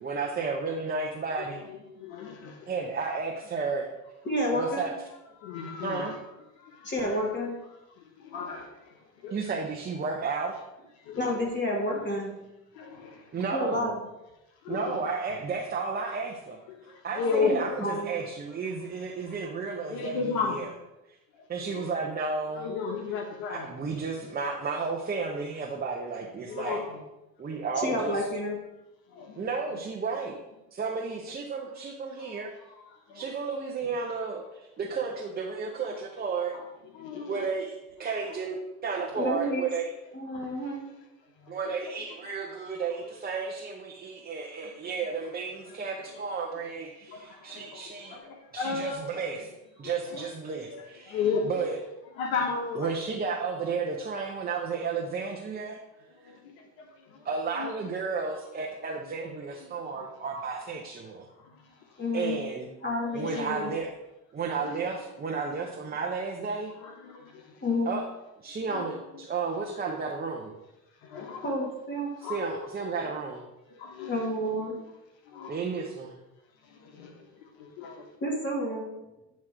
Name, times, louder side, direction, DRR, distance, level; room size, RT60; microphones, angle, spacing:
voice 1, 0.0-1.6 2.7-3.9 4.5-4.9 5.8-6.1 9.3-10.6 13.3-13.9 14.7-16.6 17.0-20.7 21.5-22.7 23.5-26.8 27.4-28.2 29.4-30.4 30.7-32.5 33.1-36.6 37.3-39.9 41.5-48.2 48.5-49.5 49.8-51.2 51.4-51.7 52.7-55.8 57.2-61.3 62.1-62.7 63.1-63.9 64.3-66.7 67.9-68.0 68.4-70.5 72.2-73.4 75.5-76.2, right 4 dB, 25° right, 0.8 m, -32 dB
voice 2, 1.7-2.7 5.4-6.2 6.6-7.3 8.0-8.9 9.2-9.3 11.0-11.3 12.7-13.3 14.6-15.0 16.7-17.6 19.9-20.6 21.6-21.9 22.5-23.7 26.4-27.0 29.1-29.5 32.2-32.4 33.1-33.2 36.5-36.6 36.9-37.4 40.3-40.8 41.4-41.7 47.1-49.2 49.8-50.2 50.7-51.5 52.2-53.1 56.1-57.3 57.6-57.7 59.6-59.7 60.0-60.1 61.4-61.7 63.1-63.4 64.6-64.7 66.8-67.5 68.7-69.0 71.0-71.5 72.2-72.7 73.7-74.2 75.3-75.6 76.6-78.0, left 5 dB, 80° left, 1.2 m, -35 dB
voice 3, 4.2-4.9 6.8-7.5 11.2-12.3 13.5-13.9 17.4-17.5 17.8-18.1 27.7-28.6 39.1-39.6 40.1-40.8 62.0-62.4 62.8-63.7 67.6-67.9 71.4-72.1 74.1-74.8 78.2-78.9, left 1 dB, 30° left, 1.6 m, -30 dB
8.8 x 3.1 x 4.9 m
supercardioid pair, 105°, 40 cm